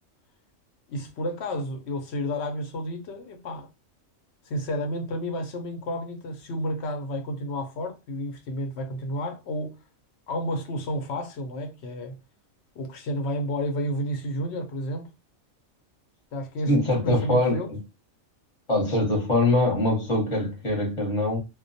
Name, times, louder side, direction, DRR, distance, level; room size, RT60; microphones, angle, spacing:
voice 1, 0.9-3.7 4.4-9.7 10.3-12.1 12.8-15.1 16.3-17.7, equal, 65° left, 0.8 m, -31 dB
voice 2, 16.7-17.8 18.7-21.4, left 1 dB, 30° left, 0.8 m, -23 dB
2.3 x 2.2 x 2.5 m
omnidirectional pair, 1.4 m